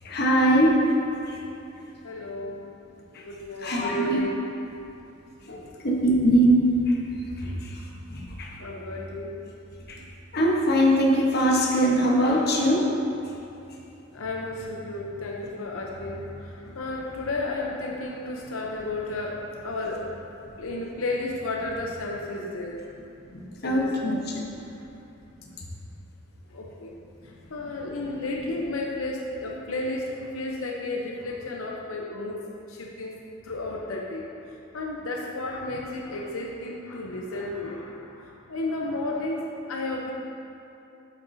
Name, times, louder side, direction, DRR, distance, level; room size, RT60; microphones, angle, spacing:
voice 1, 0.0-0.8 1.3-1.4 3.6-4.2 5.5-6.6 7.4-7.7 8.1-8.5 9.9-10.0 10.3-12.8 23.6-24.5, equal, 50° left, -2 dB, 1.1 m, -22 dB
voice 2, 2.0-2.6 3.2-4.4 8.6-9.3 14.1-20.3 20.6-22.8 23.6-24.1 26.5-26.9 27.2-32.4 32.7-33.1 33.4-34.2 34.7-40.1, left 2 dB, 90° left, -1 dB, 0.7 m, -32 dB
8.2 x 8.1 x 2.7 m, 2.8 s
head